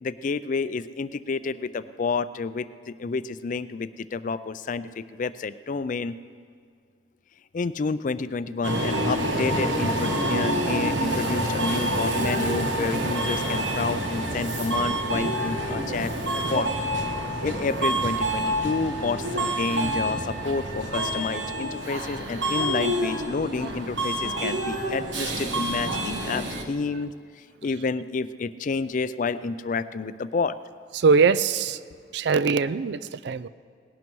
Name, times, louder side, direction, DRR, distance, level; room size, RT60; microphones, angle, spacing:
voice 1, 0.0-6.1 7.5-16.7 17.4-27.1 27.6-30.6, left 4 dB, 45° left, 0.4 m, -29 dB
Subway metro underground, 8.6-26.6, right 1 dB, 85° right, 1.3 m, -27 dB
voice 2, 30.9-31.8 32.1-33.5, right 5 dB, 65° right, 0.4 m, -22 dB
18.5 x 11.5 x 4.6 m
head